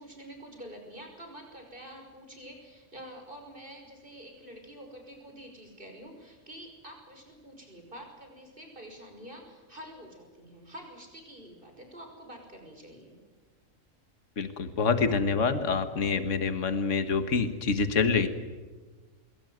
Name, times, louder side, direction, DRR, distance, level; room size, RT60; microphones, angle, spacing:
voice 1, 0.0-13.2, equal, 40° right, 3 dB, 6.0 m, -47 dB
voice 2, 14.4-18.3, left 5 dB, 65° left, 10 dB, 1.9 m, -26 dB
26.5 x 22.0 x 9.4 m, 1.4 s
omnidirectional pair, 1.4 m